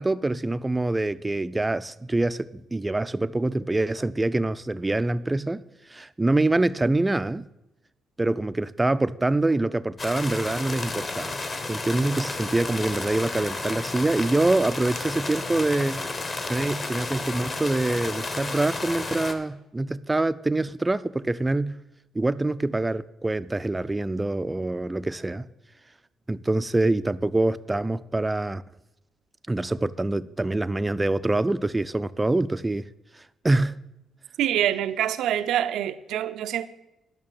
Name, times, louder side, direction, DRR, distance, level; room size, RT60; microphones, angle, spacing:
voice 1, 0.0-5.6 5.9-7.5 8.2-11.4 11.7-16.1 16.5-21.8 22.1-25.5 26.3-28.6 29.5-32.9 33.4-33.8, right 2 dB, 15° right, 0.4 m, -25 dB
sound 1, 10.0-19.3, left 3 dB, 35° left, 1.3 m, -32 dB
voice 2, 34.4-36.7, right 11 dB, 85° right, 0.6 m, -25 dB
11.0 x 6.1 x 7.3 m
cardioid pair, 90°, 0 cm